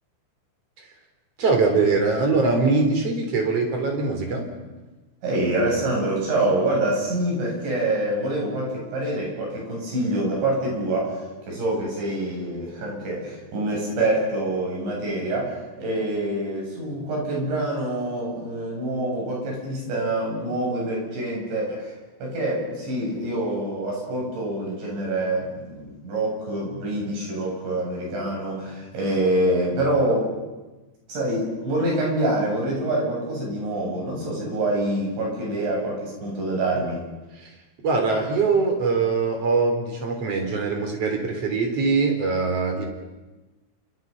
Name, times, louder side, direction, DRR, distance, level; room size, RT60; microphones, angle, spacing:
voice 1, 1.4-4.5 37.4-37.5 37.8-42.9, right 4 dB, 35° right, 3 dB, 4.4 m, -22 dB
voice 2, 5.2-22.0 22.2-30.3 31.1-37.0, right 1 dB, 70° right, -2 dB, 10.5 m, -26 dB
29.5 x 26.5 x 5.6 m, 1.2 s
omnidirectional pair, 5.4 m